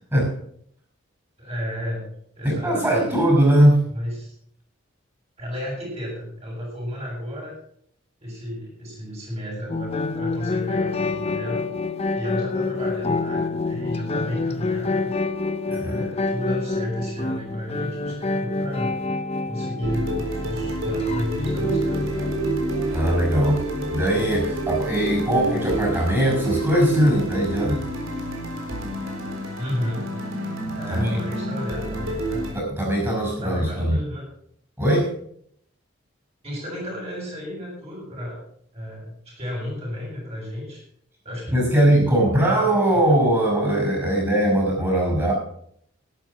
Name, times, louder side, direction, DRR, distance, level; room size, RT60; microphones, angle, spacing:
voice 1, 1.4-2.1 2.4-3.2 3.9-4.3 5.4-7.6 8.2-11.6 12.1-15.1 15.7-18.9 19.5-22.1 29.6-30.1 30.7-32.5 33.2-34.3 36.4-38.4 38.7-40.8 41.2-41.6 42.3-43.1, equal, 30° right, -3 dB, 7.6 m, -32 dB
voice 2, 2.4-3.9 15.7-16.1 22.9-27.8 30.9-31.2 32.5-34.0 34.8-35.1 41.5-45.3, right 1 dB, 15° right, 0 dB, 5.8 m, -20 dB
sound 1, 9.7-25.2, left 3 dB, 30° left, 0.6 m, -28 dB
sound 2, 19.8-32.5, right 2 dB, 70° right, 4.0 m, -29 dB
12.0 x 11.5 x 5.9 m, 0.66 s
head